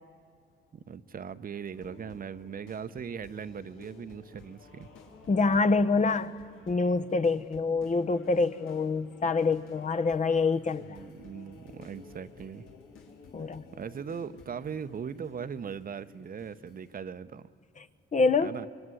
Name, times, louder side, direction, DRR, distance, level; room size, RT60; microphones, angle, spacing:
voice 1, 0.7-4.9 10.8-12.7 13.7-17.5 18.4-18.7, right 7 dB, 45° right, 0.9 m, -39 dB
sound 1, 1.7-17.0, left 4 dB, 90° left, 4.4 m, -53 dB
voice 2, 5.3-6.3 6.7-11.0 13.3-13.6 18.1-18.5, left 4 dB, 40° left, 1.1 m, -26 dB
25.5 x 22.5 x 9.9 m
cardioid pair, 90°, 20 cm